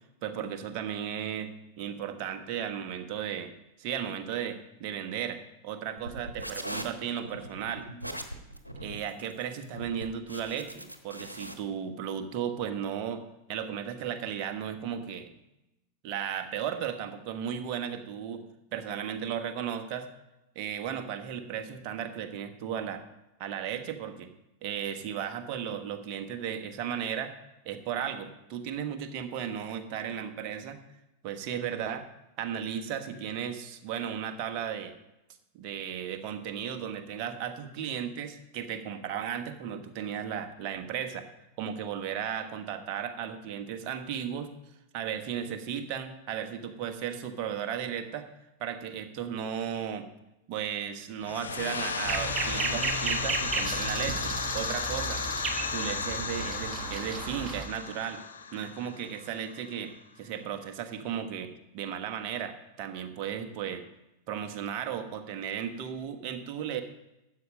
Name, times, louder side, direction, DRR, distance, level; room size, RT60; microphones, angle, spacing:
voice 1, 0.2-1.5 1.8-3.5 3.8-7.9 8.8-13.2 13.5-15.3 16.0-18.4 18.7-20.1 20.5-23.0 23.4-24.3 24.6-27.3 27.6-30.8 31.2-32.0 32.4-34.9 35.5-41.3 41.6-44.5 44.9-48.3 48.6-50.1 50.5-55.2 55.7-58.2 58.5-61.5 61.7-63.8 64.3-66.8, right 8 dB, 40° right, 6 dB, 1.3 m, -35 dB
sound 1, 6.0-11.5, equal, 85° right, 1.2 m, -40 dB
sound 2, 51.2-59.8, left 5 dB, 70° left, 0.9 m, -34 dB
sound 3, 52.0-57.6, right 4 dB, 25° right, 1.3 m, -34 dB
13.0 x 8.6 x 5.2 m, 0.92 s
figure-of-eight pair, 90°, 0 cm